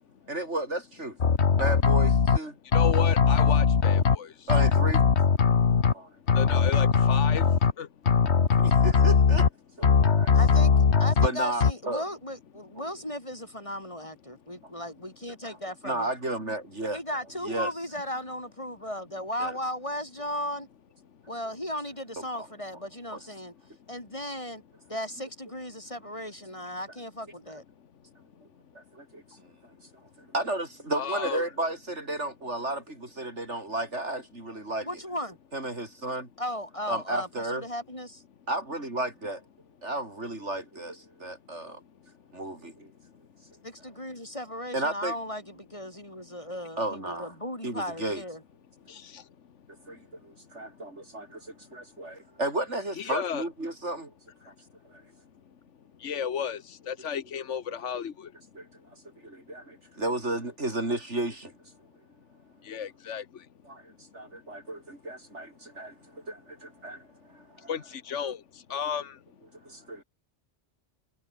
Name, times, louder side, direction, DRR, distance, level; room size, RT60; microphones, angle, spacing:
voice 1, 0.3-1.2 1.5-2.6 4.5-5.1 5.9-6.1 8.6-9.5 9.8-10.3 10.7-10.8 11.2-12.0 12.8-12.9 15.4-15.6 15.8-17.0 17.4-17.7 19.4-19.6 22.3-22.5 23.1-23.2 28.8-29.5 30.2-34.9 35.5-36.3 36.9-37.6 38.5-39.4 39.8-41.8 42.3-42.9 44.7-45.1 46.8-47.3 47.6-48.2 49.9-54.1 54.5-54.6 54.9-55.0 58.5-58.7 59.2-61.5 63.7-67.7 69.6-70.0, right 2 dB, 75° right, 6.8 m, -33 dB
sound 1, 1.2-2.4 2.7-4.2 4.5-5.9 6.3-7.7 8.1-9.5 9.8-11.3 11.6-11.7, left 6 dB, 70° left, 1.7 m, -20 dB
voice 2, 2.7-4.5 6.3-7.5 7.8-7.9 30.9-31.5 48.9-49.2 53.0-53.4 56.0-58.3 62.6-63.4 67.7-69.2, left 7 dB, 85° left, 1.5 m, -33 dB
voice 3, 10.4-10.7 11.0-16.1 16.9-20.7 21.3-23.5 23.9-24.6 24.9-27.6 34.8-35.4 36.4-38.2 43.6-48.4, equal, 25° left, 7.6 m, -36 dB
omnidirectional pair, 1.2 m